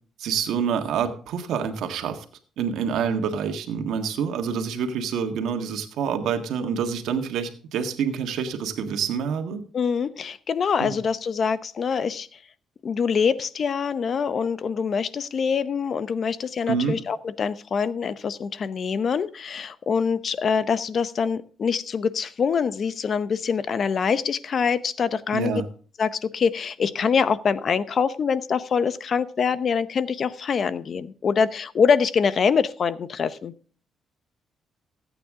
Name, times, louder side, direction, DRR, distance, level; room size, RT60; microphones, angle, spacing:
voice 1, 0.2-2.2 2.6-9.6 10.8-11.0 16.7-17.0 25.3-25.7, right 7 dB, 80° right, 6 dB, 1.6 m, -27 dB
voice 2, 9.7-12.4 12.8-25.6 26.0-33.5, left 6 dB, 50° left, 15 dB, 0.7 m, -24 dB
15.0 x 9.1 x 3.7 m, 0.42 s
cardioid pair, 90°, 0 cm